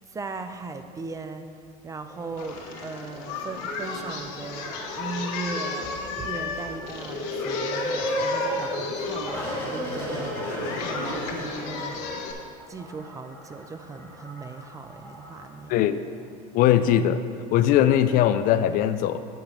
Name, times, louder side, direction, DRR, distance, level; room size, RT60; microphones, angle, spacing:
voice 1, 0.1-1.5 1.8-10.3 10.8-12.2 12.7-15.7, right 3 dB, 15° right, 8 dB, 0.4 m, -38 dB
sound 1, 2.1-12.0 12.6-15.6 16.2-16.3, equal, 10° left, 2.3 m, -34 dB
Singing, 2.4-12.3, left 4 dB, 70° left, 1.2 m, -34 dB
voice 2, 15.7-16.0 16.5-17.2 17.5-19.2, left 11 dB, 50° left, 11 dB, 0.4 m, -20 dB
7.7 x 5.1 x 6.1 m, 2.3 s
supercardioid pair, 125°, 19 cm